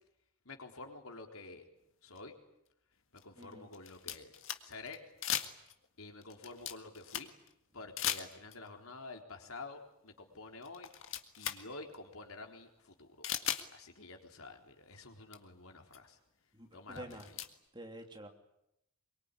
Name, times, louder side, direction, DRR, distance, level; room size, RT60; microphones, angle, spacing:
voice 1, 0.4-1.6 2.0-2.3 3.1-4.3 4.6-5.0 6.0-7.3 7.7-10.9 11.4-16.2 16.7-17.4, left 3 dB, 80° left, 3 dB, 4.0 m, -49 dB
sound 1, 2.2-2.3 3.1-5.0 5.2-5.9 6.2-7.5 8.0-8.7 10.1-10.2 10.6-11.6 11.9-12.0 13.2-13.7 14.9-15.0 15.3-15.4 15.9-16.0 16.9-17.5, left 10 dB, 65° left, 1.9 m, -38 dB
voice 2, 3.4-3.7 16.5-17.3 17.7-18.3, right 1 dB, 20° right, 4 dB, 3.0 m, -48 dB
24.0 x 23.5 x 10.0 m, 0.81 s
head